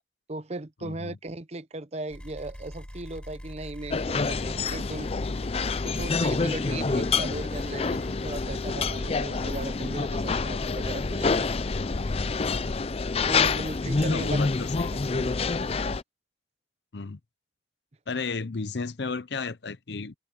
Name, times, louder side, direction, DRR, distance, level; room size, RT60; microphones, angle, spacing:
voice 1, 0.3-5.1 5.6-11.5 13.3-14.4 15.1-15.3, right 2 dB, 35° right, 0.7 m, -37 dB
voice 2, 0.8-1.2 4.2-4.3 10.8-11.0 12.5-12.8 14.1-15.0 16.9-17.2 18.1-20.2, left 4 dB, 65° left, 0.8 m, -34 dB
sound 1, 2.1-9.9, equal, 5° left, 7.7 m, -44 dB
sound 2, 3.9-16.0, left 4 dB, 35° left, 0.5 m, -27 dB
head